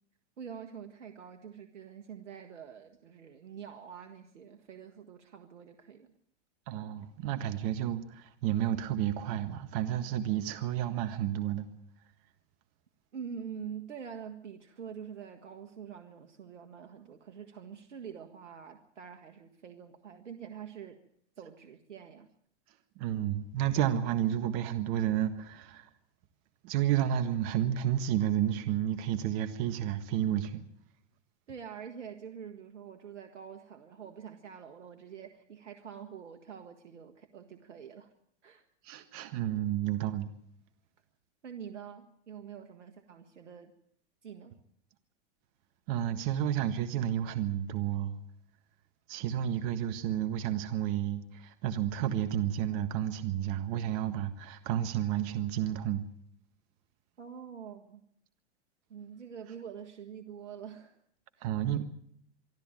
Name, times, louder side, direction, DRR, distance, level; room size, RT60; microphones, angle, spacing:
voice 1, 0.4-6.1 13.1-21.0 21.4-22.3 31.5-38.1 38.4-38.6 41.4-43.7 44.2-44.6 57.2-58.0 58.9-61.0 61.3-61.5, right 7 dB, 90° right, 1.7 m, -46 dB
voice 2, 6.7-11.7 23.0-25.9 26.6-30.6 38.8-40.3 45.9-48.2 49.1-56.0 61.4-61.8, right 11 dB, 50° right, 1.7 m, -31 dB
25.0 x 13.0 x 9.0 m
hypercardioid pair, 120°, 35 cm